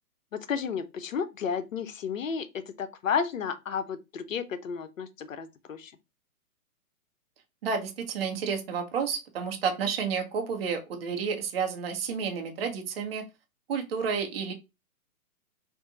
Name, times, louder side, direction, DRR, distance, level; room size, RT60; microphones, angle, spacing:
voice 1, 0.3-5.9, left 6 dB, 60° left, 0.7 m, -32 dB
voice 2, 7.6-13.2 13.7-14.5, right 6 dB, 40° right, 1.1 m, -30 dB
3.7 x 2.6 x 3.9 m
figure-of-eight pair, 125°, 45 cm